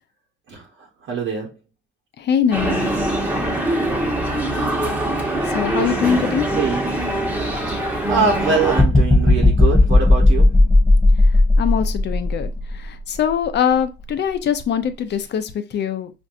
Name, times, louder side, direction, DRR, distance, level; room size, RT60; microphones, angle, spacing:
voice 1, 1.0-1.5 6.5-6.9 8.1-10.5, right 5 dB, 75° right, 1.1 m, -23 dB
voice 2, 2.2-2.9 5.5-6.5 11.6-16.1, left 8 dB, 60° left, 0.6 m, -22 dB
sound 1, 2.5-8.8, right 1 dB, 5° right, 1.2 m, -23 dB
sound 2, 8.7-12.7 13.3-13.4, left 2 dB, 10° left, 0.5 m, -14 dB
5.1 x 2.6 x 2.5 m
cardioid pair, 90°, 20 cm